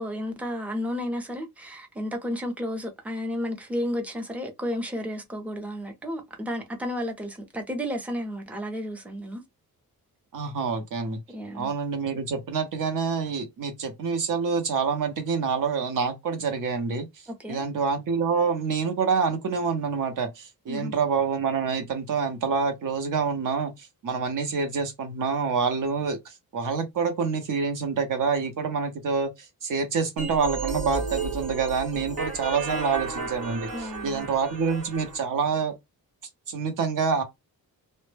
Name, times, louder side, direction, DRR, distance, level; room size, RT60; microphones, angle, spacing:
voice 1, 0.0-9.4 11.3-11.7 17.3-17.6 20.7-20.9 33.7-34.3, equal, 5° right, 0.4 m, -32 dB
voice 2, 10.3-11.2 11.5-35.7 36.5-37.2, right 5 dB, 60° right, 0.8 m, -27 dB
sound 1, 30.2-35.2, right 4 dB, 75° right, 1.2 m, -33 dB
2.1 x 2.1 x 3.2 m
wide cardioid pair, 170°, 36 cm